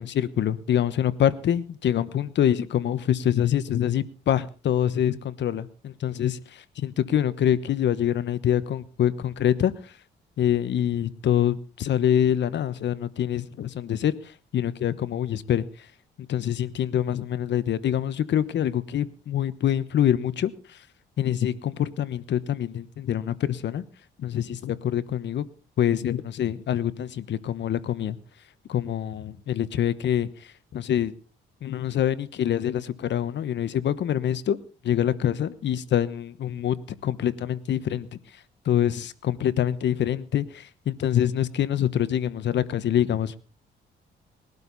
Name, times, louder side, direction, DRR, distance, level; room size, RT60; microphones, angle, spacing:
voice 1, 0.0-9.9 10.4-15.9 16.3-20.8 21.2-23.8 24.2-25.4 25.8-28.2 28.7-31.1 31.6-34.6 34.8-36.8 37.0-38.1 38.6-43.4, left 10 dB, 65° left, 15 dB, 1.2 m, -25 dB
20.5 x 12.0 x 4.1 m, 0.37 s
cardioid pair, 90°, 20 cm